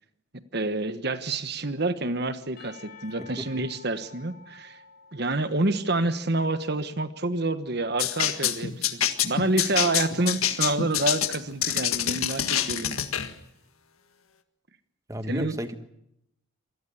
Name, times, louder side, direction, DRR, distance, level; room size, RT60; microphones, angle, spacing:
voice 1, 0.5-4.8 5.1-13.1 15.3-15.5, right 2 dB, 50° right, 11 dB, 1.3 m, -28 dB
Percussion / Church bell, 2.6-6.5, left 4 dB, 45° left, 7.6 m, -50 dB
sound 1, 8.0-13.3, left 10 dB, 85° left, 1.8 m, -26 dB
voice 2, 15.1-15.8, equal, 15° right, 9 dB, 1.4 m, -33 dB
26.5 x 19.0 x 8.5 m, 0.79 s
head